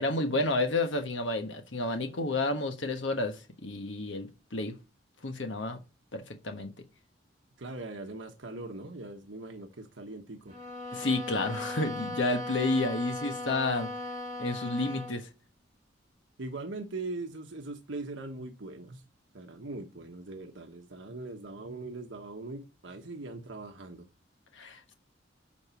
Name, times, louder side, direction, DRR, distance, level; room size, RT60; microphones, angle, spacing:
voice 1, 0.0-4.8 5.2-5.8 6.1-6.7 10.9-13.9 14.4-15.3 24.5-24.9, left 2 dB, 80° left, 1.4 m, -30 dB
voice 2, 7.6-10.6 16.4-19.0 19.3-24.1, right 2 dB, 85° right, 1.3 m, -41 dB
sound 1, 10.5-15.2, left 1 dB, 40° right, 2.6 m, -38 dB
8.9 x 5.5 x 6.9 m
head